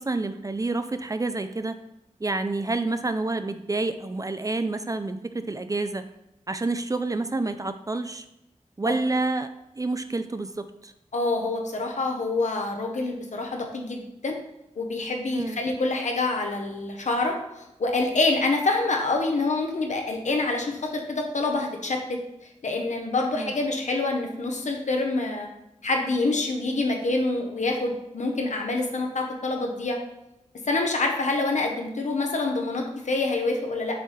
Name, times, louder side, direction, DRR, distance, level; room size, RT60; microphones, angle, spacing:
voice 1, 0.0-1.8 2.2-6.0 6.5-8.3 8.8-9.5 9.8-10.9 15.3-15.6 23.3-23.5, right 2 dB, 30° right, 10 dB, 0.4 m, -28 dB
voice 2, 11.1-14.4 14.8-22.0 22.6-25.5 25.8-30.0 30.7-34.0, left 2 dB, 75° left, 2 dB, 1.0 m, -26 dB
6.8 x 3.3 x 4.2 m, 0.88 s
wide cardioid pair, 65°, 12 cm